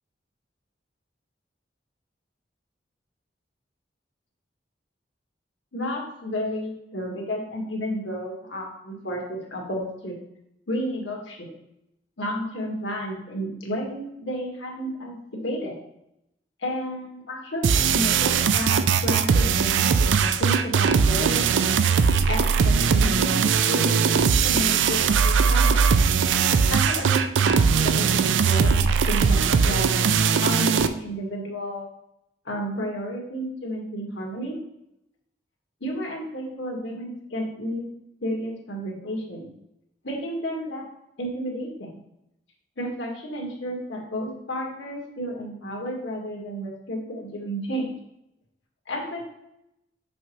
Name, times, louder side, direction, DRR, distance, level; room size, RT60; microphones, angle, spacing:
voice 1, 5.7-10.2 10.7-11.5 12.2-15.7 16.6-21.8 22.3-25.8 26.7-29.9 30.4-31.9 32.5-34.6 35.8-37.8 38.2-39.5 40.0-40.8 41.2-42.0 42.8-47.9 48.9-49.3, equal, 80° left, -1 dB, 1.8 m, -32 dB
sound 1, 17.6-30.9, right 6 dB, 85° right, 0.4 m, -20 dB
6.2 x 5.8 x 3.1 m, 0.82 s
head